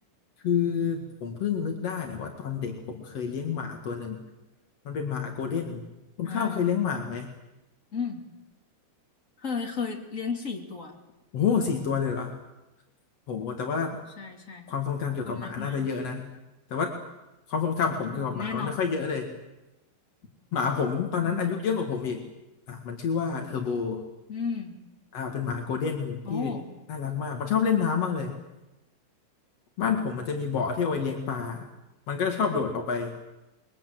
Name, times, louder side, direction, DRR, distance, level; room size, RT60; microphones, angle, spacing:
voice 1, 0.4-4.2 4.9-5.8 6.2-7.3 11.3-12.3 13.3-14.0 14.7-16.3 16.7-16.9 17.5-19.3 20.5-22.3 22.7-24.0 25.1-26.5 26.9-28.4 29.8-31.7 32.1-33.1, left 6 dB, 50° left, 3 dB, 1.9 m, -28 dB
voice 2, 6.2-6.7 7.9-8.3 9.4-11.0 14.2-14.7 15.2-15.9 18.1-18.9 21.2-21.4 24.3-24.7 26.2-26.6, left 5 dB, 25° left, 1 dB, 1.9 m, -34 dB
28.0 x 22.0 x 7.8 m, 1.0 s
omnidirectional pair, 5.8 m